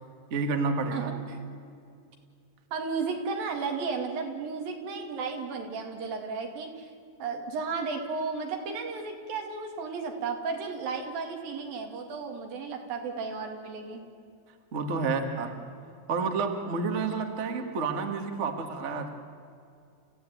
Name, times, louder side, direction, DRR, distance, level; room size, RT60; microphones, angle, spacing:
voice 1, 0.3-1.1 14.7-15.7 16.1-19.1, right 4 dB, 35° right, 5 dB, 1.2 m, -29 dB
voice 2, 0.9-1.4 2.7-6.9 7.2-14.0, right 4 dB, 85° right, 3 dB, 4.2 m, -34 dB
29.0 x 15.5 x 9.2 m, 2.4 s
omnidirectional pair, 4.0 m